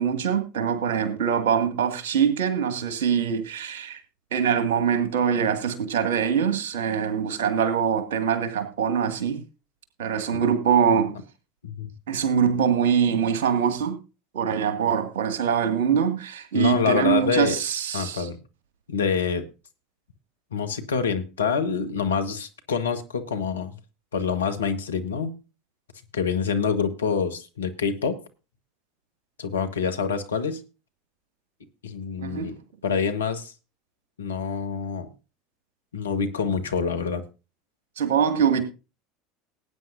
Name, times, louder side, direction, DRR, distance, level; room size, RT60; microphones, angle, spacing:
voice 1, 0.0-4.0 4.3-9.4 10.0-11.1 12.1-14.0 14.3-18.3 32.2-32.5 38.0-38.6, right 7 dB, 65° right, 2.1 m, -23 dB
voice 2, 16.5-17.6 17.9-18.4 18.9-19.4 20.5-23.7 24.1-25.4 26.1-28.2 29.4-30.6 31.8-32.5 32.8-33.5 34.2-35.1 35.9-37.2, left 6 dB, 75° left, 1.3 m, -26 dB
19.0 x 9.2 x 2.7 m
figure-of-eight pair, 75°, 0 cm